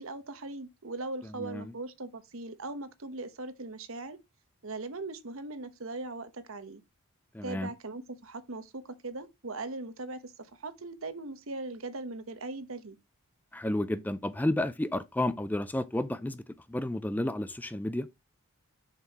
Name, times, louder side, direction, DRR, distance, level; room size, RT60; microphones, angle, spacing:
voice 1, 0.0-4.2 4.6-6.8 7.4-13.0, right 2 dB, 65° right, 1.1 m, -40 dB
voice 2, 1.4-1.7 7.3-7.7 13.5-16.4 16.7-18.1, left 1 dB, 10° left, 0.3 m, -31 dB
6.9 x 6.7 x 2.9 m
head